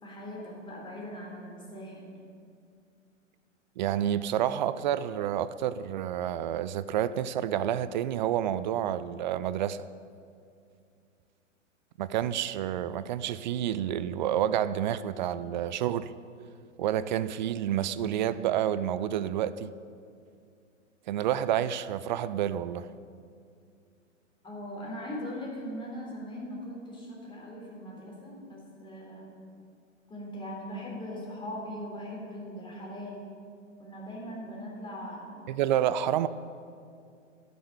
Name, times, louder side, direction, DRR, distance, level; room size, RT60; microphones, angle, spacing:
voice 1, 0.0-2.2 24.4-29.3 30.1-33.2 33.8-35.4, equal, 15° left, 3.7 m, -40 dB
voice 2, 3.8-9.9 12.0-16.1 16.8-19.7 21.1-22.9 35.5-36.3, right 10 dB, 40° right, 0.4 m, -29 dB
12.5 x 6.8 x 9.0 m
figure-of-eight pair, 105°, 38 cm